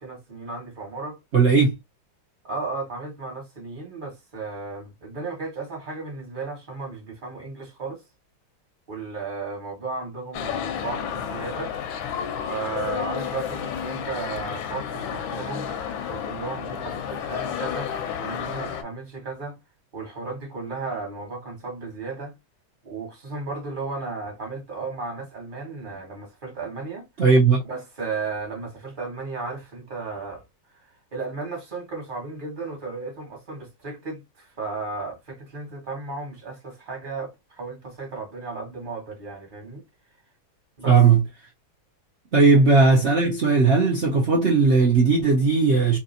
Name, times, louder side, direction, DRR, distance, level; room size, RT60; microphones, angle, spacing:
voice 1, 0.0-1.2 2.4-8.0 8.9-11.7 12.5-15.8 16.1-17.9 18.2-19.6 19.9-22.3 22.8-27.1 27.6-30.4 30.8-39.8 40.8-41.0, right 3 dB, 30° right, 1.3 m, -34 dB
voice 2, 1.3-1.8 27.2-27.6 40.9-41.2 42.3-46.0, right 4 dB, 65° right, 0.7 m, -17 dB
sound 1, 10.3-18.8, left 8 dB, 80° left, 1.3 m, -31 dB
3.3 x 2.9 x 2.6 m
omnidirectional pair, 2.2 m